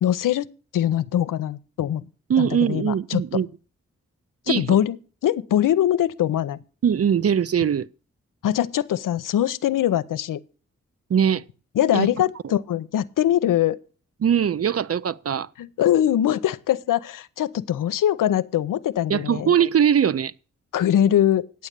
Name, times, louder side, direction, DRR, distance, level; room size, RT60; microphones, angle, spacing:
voice 1, 0.0-2.1 2.4-3.2 4.5-5.0 5.2-6.6 8.4-10.4 11.8-13.8 15.6-19.5 20.7-21.5, left 11 dB, 85° left, 0.6 m, -22 dB
voice 2, 2.3-3.5 4.5-4.8 6.8-7.9 11.1-11.4 11.9-12.1 14.2-15.5 19.1-20.3, right 8 dB, 50° right, 0.5 m, -21 dB
9.6 x 7.2 x 6.6 m
cardioid pair, 40°, 31 cm